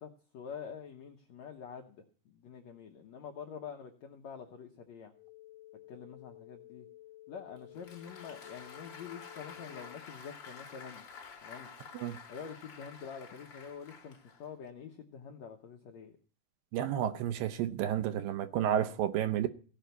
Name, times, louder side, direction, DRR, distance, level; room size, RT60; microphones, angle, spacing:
voice 1, 0.0-5.1 5.9-6.9 7.3-11.1 11.4-11.7 12.3-16.2, left 7 dB, 75° left, 1.6 m, -46 dB
sound 1, 5.1-10.1, left 15 dB, 60° right, 1.3 m, -54 dB
Applause, 7.6-14.7, left 5 dB, 50° left, 1.5 m, -50 dB
voice 2, 16.7-19.5, right 10 dB, 75° right, 2.2 m, -31 dB
17.0 x 5.7 x 9.3 m
omnidirectional pair, 4.6 m